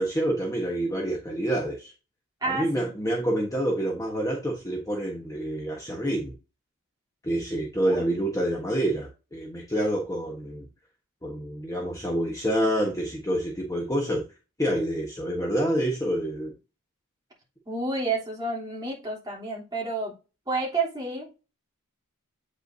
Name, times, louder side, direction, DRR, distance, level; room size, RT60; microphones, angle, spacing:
voice 1, 0.0-1.9 2.4-6.3 7.2-10.7 11.2-14.2 14.6-16.5, right 1 dB, 15° left, 1.2 m, -27 dB
voice 2, 2.4-2.9 7.9-8.0 17.7-20.1 20.5-21.5, right 3 dB, 20° right, 3.2 m, -30 dB
8.4 x 5.3 x 2.7 m
head